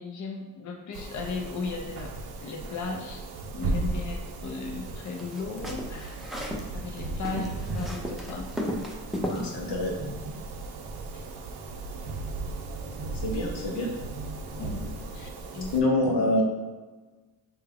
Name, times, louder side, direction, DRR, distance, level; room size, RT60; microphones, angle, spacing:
voice 1, 0.0-3.3 3.5-6.2 6.7-8.6 9.4-9.6 11.1-11.3 14.6-15.7, left 4 dB, 45° left, 1 dB, 0.6 m, -36 dB
sound 1, 0.9-15.8, right 3 dB, 70° right, 0.6 m, -36 dB
sound 2, 5.2-6.7 7.0-9.4, equal, ahead, 0.5 m, -34 dB
voice 2, 9.3-9.9 13.2-13.9 15.7-16.4, left 2 dB, 85° left, -1 dB, 0.8 m, -26 dB
3.5 x 2.3 x 3.4 m, 1.3 s
cardioid pair, 60°, 40 cm